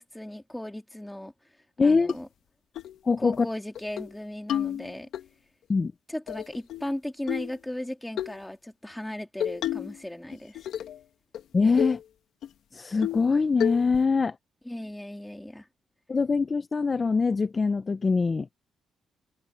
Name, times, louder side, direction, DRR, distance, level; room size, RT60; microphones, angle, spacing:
voice 1, 0.0-1.3 1.8-2.3 3.2-5.1 6.1-10.6 14.6-15.7, left 1 dB, 5° left, 3.9 m, -36 dB
voice 2, 1.8-2.1 3.0-3.5 5.7-5.9 11.5-12.0 12.7-14.4 16.1-18.5, left 4 dB, 30° left, 0.8 m, -23 dB
sound 1, 2.1-2.2 2.8-3.0 3.3-3.4 3.8-4.1 4.5-5.2 6.3-6.9 7.3-7.6 8.2-8.4 9.4-10.0 10.3-11.0 11.3-11.4 11.8-12.0 12.4-12.5 13.0-13.3 13.6-14.0, left 10 dB, 75° left, 2.1 m, -31 dB
cardioid pair, 90°, 0 cm